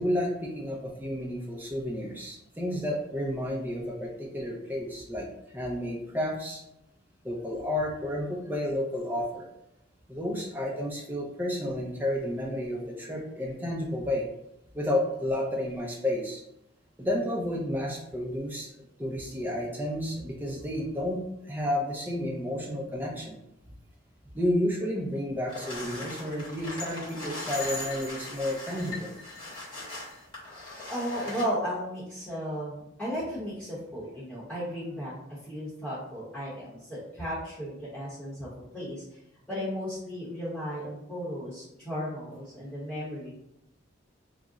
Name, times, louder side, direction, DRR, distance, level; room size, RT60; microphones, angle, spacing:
voice 1, 0.0-5.3 5.5-6.6 7.2-9.5 10.1-14.3 14.7-16.4 17.0-23.4 24.3-29.1, left 1 dB, 10° right, -2 dB, 0.5 m, -31 dB
Cereal pouring, 25.5-31.5, left 2 dB, 25° left, 1.0 m, -39 dB
voice 2, 30.9-35.1 35.4-38.5 38.7-39.0 39.5-43.3, equal, 5° left, -11 dB, 0.9 m, -35 dB
2.4 x 2.1 x 3.8 m, 0.82 s
head